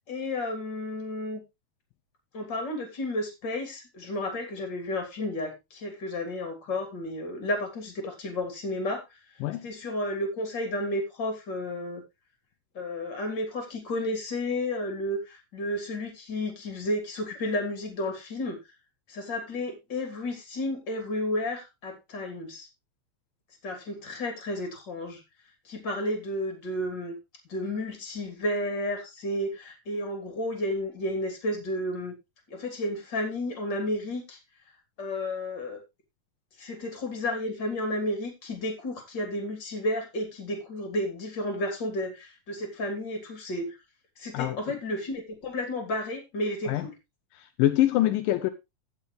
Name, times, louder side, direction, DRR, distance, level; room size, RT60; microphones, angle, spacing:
voice 1, 0.0-1.4 2.3-9.2 9.6-12.0 12.7-18.6 19.1-22.7 23.6-25.2 25.6-27.2 27.5-32.1 32.5-34.4 35.0-35.8 36.6-43.8 44.2-46.9, left 1 dB, 30° left, 3.4 m, -32 dB
voice 2, 47.4-48.5, left 14 dB, 80° left, 2.3 m, -24 dB
16.5 x 6.1 x 3.3 m
omnidirectional pair, 4.0 m